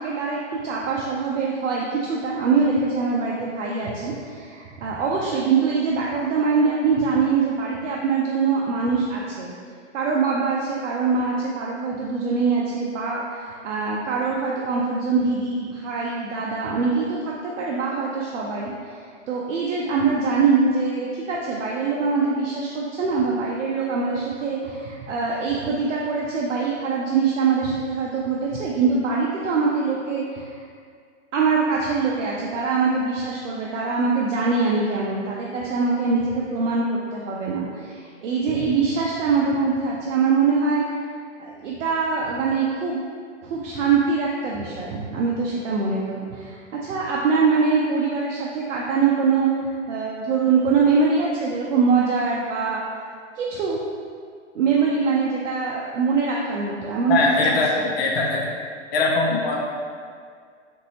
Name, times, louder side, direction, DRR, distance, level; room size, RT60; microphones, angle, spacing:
voice 1, 0.0-9.5 9.9-30.6 31.3-40.9 41.4-43.0 43.4-53.0 53.4-53.8 54.5-57.9, right 4 dB, 75° right, -3 dB, 0.6 m, -23 dB
voice 2, 57.1-57.7 57.9-58.4 58.9-59.6, left 3 dB, 55° left, -2 dB, 0.7 m, -21 dB
3.9 x 2.6 x 2.8 m, 2.1 s
hypercardioid pair, 125°, 37 cm